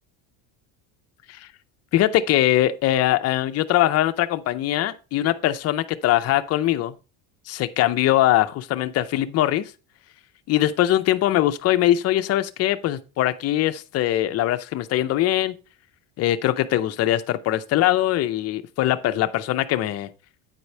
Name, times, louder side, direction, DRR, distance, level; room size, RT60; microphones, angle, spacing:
voice 1, 1.9-7.0 7.5-9.7 10.5-15.5 16.2-20.1, left 13 dB, 35° left, 0.6 m, -22 dB
9.0 x 4.6 x 4.1 m
cardioid pair, 155°, 43 cm